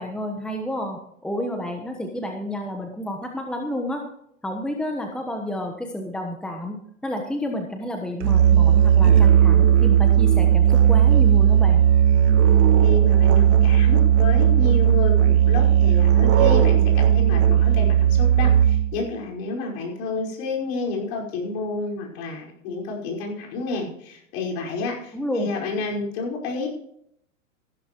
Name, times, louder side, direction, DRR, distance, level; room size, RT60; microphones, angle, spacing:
voice 1, 0.0-4.0 4.4-6.8 7.0-11.8 25.1-25.5, left 1 dB, ahead, 3 dB, 1.1 m, -30 dB
Musical instrument, 8.2-19.0, right 9 dB, 50° right, 1.8 m, -16 dB
voice 2, 12.8-26.7, left 3 dB, 50° left, -1 dB, 5.4 m, -30 dB
15.0 x 12.5 x 3.1 m, 0.72 s
hypercardioid pair, 125°, 40 cm